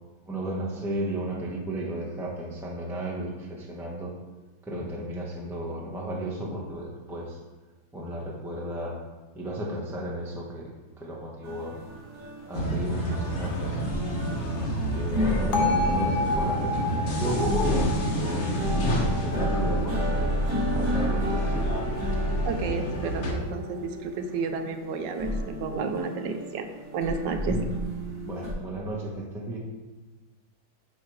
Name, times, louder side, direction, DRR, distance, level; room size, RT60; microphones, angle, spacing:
voice 1, 0.3-4.1 4.6-7.4 7.9-9.0 9.3-11.8 12.5-13.9 14.6-18.4 19.0-21.5 27.5-27.6 28.2-29.6, right 1 dB, 5° right, -4 dB, 0.4 m, -34 dB
sound 1, 11.4-28.5, equal, 45° right, 2.5 m, -31 dB
sound 2, 12.5-23.3, equal, 40° left, 0.8 m, -29 dB
Bell, 15.5-19.6, left 2 dB, 75° left, 1.6 m, -30 dB
voice 2, 22.4-27.6, right 4 dB, 75° right, 7 dB, 1.2 m, -31 dB
8.8 x 3.3 x 4.7 m, 1.2 s
omnidirectional pair, 2.1 m